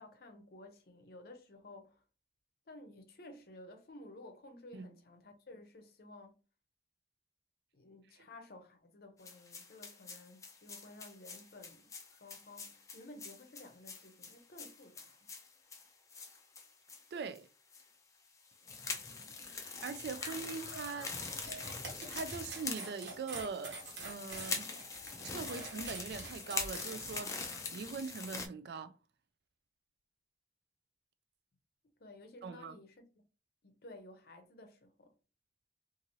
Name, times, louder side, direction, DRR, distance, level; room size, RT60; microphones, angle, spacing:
voice 1, 0.0-2.0 2.7-6.4 7.7-15.3 32.0-33.0 33.6-35.1, left 2 dB, 55° left, 0.6 m, -54 dB
sound 1, 9.2-17.1 17.3-17.4 17.7-17.8 18.4-28.5, left 4 dB, 20° left, 0.4 m, -44 dB
voice 2, 17.1-17.5 19.4-21.1 22.1-23.8 24.0-24.7 25.2-29.0 32.4-32.8, right 5 dB, 60° right, 0.3 m, -42 dB
sound 2, 19.8-27.9, right 1 dB, 20° right, 1.0 m, -56 dB
sound 3, 21.4-27.2, right 3 dB, 80° right, 1.2 m, -47 dB
2.7 x 2.5 x 2.9 m
head